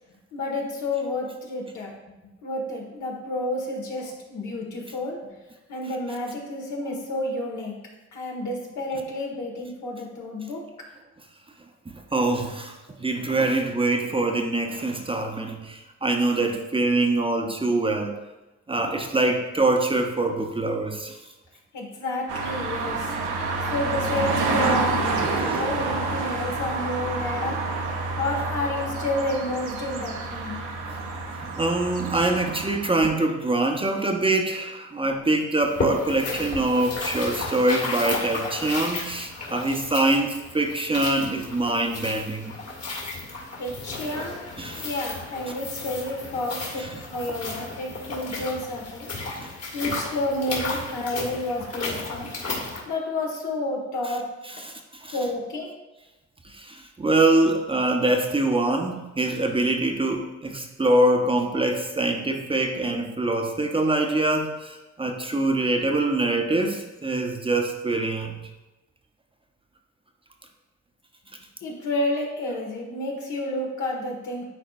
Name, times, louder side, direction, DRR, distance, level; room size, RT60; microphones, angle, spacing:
voice 1, 0.3-1.9 2.4-5.2 5.7-7.7 8.1-10.6 21.7-23.3 23.7-27.6 28.2-30.6 43.6-44.4 44.8-46.8 47.1-49.1 49.7-52.3 52.8-54.2 55.1-55.7 71.6-74.4, left 1 dB, 75° left, -1 dB, 1.8 m, -30 dB
voice 2, 12.1-18.2 18.7-21.2 25.2-25.6 30.9-31.0 31.4-42.5 44.6-44.9 46.8-47.0 54.5-55.1 56.4-68.4, right 2 dB, 20° right, 3 dB, 0.7 m, -24 dB
sound 1, 22.3-33.0, right 3 dB, 85° right, 1.0 m, -28 dB
sound 2, 35.6-52.8, left 3 dB, 55° left, 2.1 m, -33 dB
10.5 x 4.1 x 2.6 m, 1.1 s
cardioid pair, 90°, 30 cm